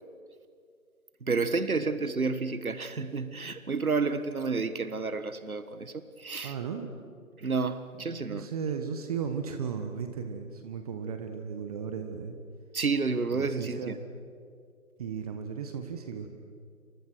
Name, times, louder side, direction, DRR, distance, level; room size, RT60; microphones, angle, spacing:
voice 1, 1.2-6.6 7.4-8.5 12.7-14.0, right 4 dB, 80° right, 12 dB, 1.6 m, -30 dB
voice 2, 6.4-6.9 8.3-12.4 13.3-13.9 15.0-16.3, right 6 dB, 25° right, 6 dB, 1.5 m, -35 dB
29.0 x 25.5 x 6.3 m, 2.2 s
figure-of-eight pair, 145°, 42 cm